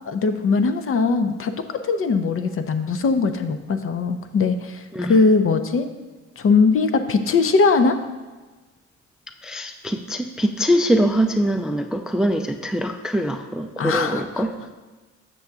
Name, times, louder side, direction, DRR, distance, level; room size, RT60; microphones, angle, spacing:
voice 1, 0.1-5.9 6.4-8.0 13.8-14.4, left 4 dB, 45° left, 8 dB, 0.6 m, -20 dB
voice 2, 9.4-14.6, equal, ahead, 6 dB, 0.3 m, -23 dB
6.9 x 6.4 x 3.6 m, 1.2 s
cardioid pair, 90°, 30 cm